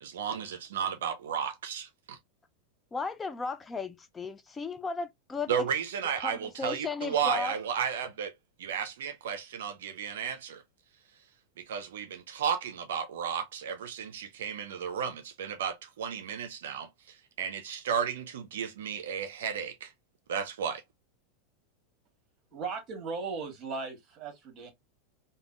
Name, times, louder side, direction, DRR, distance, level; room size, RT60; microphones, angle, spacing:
voice 1, 0.0-2.2 5.5-8.3 8.6-10.6 11.6-19.9 20.3-20.8, right 7 dB, 80° right, 0.4 m, -33 dB
voice 2, 2.9-5.7 6.2-7.6, left 4 dB, 20° left, 0.3 m, -35 dB
voice 3, 22.5-24.7, right 4 dB, 40° right, 1.3 m, -37 dB
3.4 x 2.1 x 2.3 m
hypercardioid pair, 110°, 0 cm